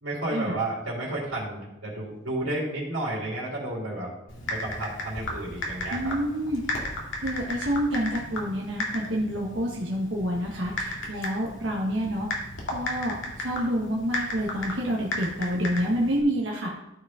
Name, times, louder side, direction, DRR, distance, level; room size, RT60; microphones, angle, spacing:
voice 1, 0.0-4.1 4.5-6.2, right 1 dB, 85° right, -4 dB, 2.9 m, -32 dB
Typing, 4.3-16.2, left 1 dB, 75° left, 2.1 m, -35 dB
voice 2, 5.9-6.6 7.2-12.3 12.7-16.8, equal, 70° right, -2 dB, 1.3 m, -28 dB
13.5 x 5.2 x 3.7 m, 0.92 s
head